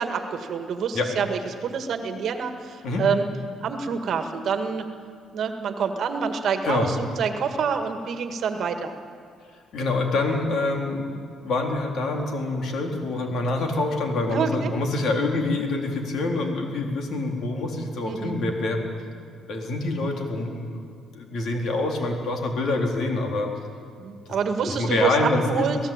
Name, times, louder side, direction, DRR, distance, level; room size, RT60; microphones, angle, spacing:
voice 1, 0.0-3.3 3.6-4.9 5.3-8.9 14.3-14.7 18.0-18.4 24.0-25.8, right 6 dB, 50° right, 6 dB, 1.9 m, -27 dB
voice 2, 9.7-18.9 19.5-20.8 21.1-23.5 24.6-25.7, left 2 dB, 55° left, 2 dB, 4.1 m, -26 dB
27.5 x 17.5 x 9.0 m, 2.2 s
cardioid pair, 135°, 0 cm